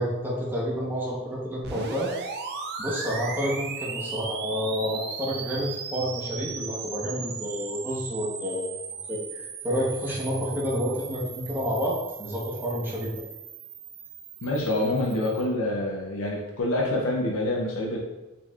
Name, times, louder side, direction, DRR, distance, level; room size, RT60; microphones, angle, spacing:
voice 1, 0.0-2.1 2.8-8.8 9.1-13.1, equal, 10° right, -6 dB, 0.7 m, -29 dB
sound 1, 1.6-15.5, right 5 dB, 50° right, 0.4 m, -37 dB
voice 2, 14.4-18.0, left 1 dB, 65° left, -1 dB, 0.6 m, -26 dB
4.2 x 3.0 x 2.2 m, 1.1 s
head